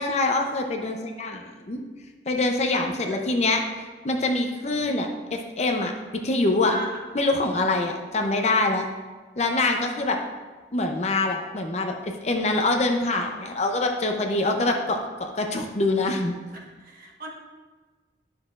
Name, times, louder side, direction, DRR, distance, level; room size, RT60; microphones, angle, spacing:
voice 1, 0.0-1.8 2.3-3.6 4.0-6.7 7.1-8.8 9.4-10.2 10.7-16.4, left 2 dB, 40° left, 3 dB, 0.6 m, -25 dB
voice 2, 2.7-3.3 6.7-7.0 7.5-7.9 9.7-10.1 16.5-17.3, right 1 dB, 50° right, -1 dB, 1.2 m, -39 dB
10.0 x 6.4 x 2.4 m, 1.4 s
head